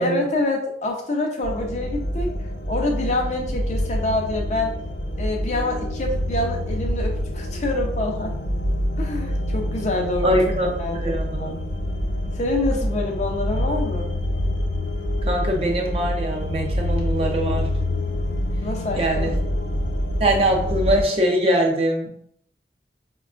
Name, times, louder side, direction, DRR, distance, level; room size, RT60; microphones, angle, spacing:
voice 1, 0.0-2.3 2.7-4.8 5.2-8.4 9.0-11.6 12.3-14.1 18.6-19.4, left 2 dB, 40° left, 1 dB, 0.5 m, -26 dB
sound 1, 1.4-21.0, left 1 dB, 65° left, 1.0 m, -26 dB
voice 2, 10.2-10.7 11.0-11.5 15.3-17.7 18.9-19.4 20.2-22.2, right 1 dB, 35° right, 1 dB, 0.6 m, -22 dB
5.1 x 2.2 x 2.4 m, 0.69 s
head